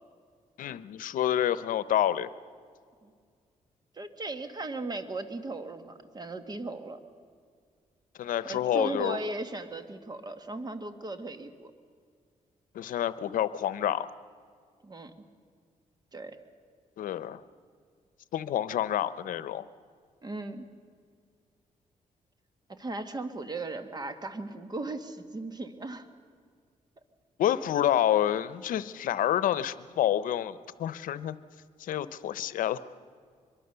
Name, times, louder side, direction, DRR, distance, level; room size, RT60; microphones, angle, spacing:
voice 1, 0.6-2.3 8.2-9.2 12.7-14.1 17.0-17.4 18.3-19.7 27.4-31.4 31.8-32.8, left 11 dB, 85° left, 16 dB, 0.7 m, -28 dB
voice 2, 3.9-7.0 8.4-11.7 14.8-15.1 16.1-16.4 20.2-20.7 22.7-26.1, right 2 dB, 30° right, 9 dB, 1.7 m, -37 dB
23.5 x 22.5 x 6.8 m, 2.1 s
cardioid pair, 100°, 14 cm